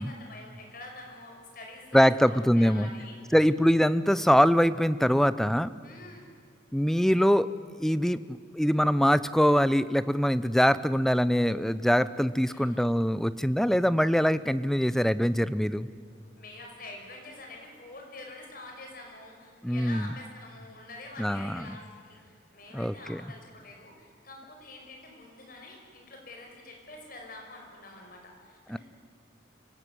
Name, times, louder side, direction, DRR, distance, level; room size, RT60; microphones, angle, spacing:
voice 1, 0.0-3.4 5.8-6.2 12.5-12.9 16.4-28.8, left 2 dB, 45° left, 1 dB, 5.7 m, -46 dB
voice 2, 1.9-2.9 3.3-5.7 6.7-7.5 7.8-15.9 19.6-20.1 21.2-21.8 22.7-23.2 28.7-28.8, equal, ahead, 15 dB, 0.5 m, -23 dB
25.0 x 17.5 x 9.4 m, 2.3 s
head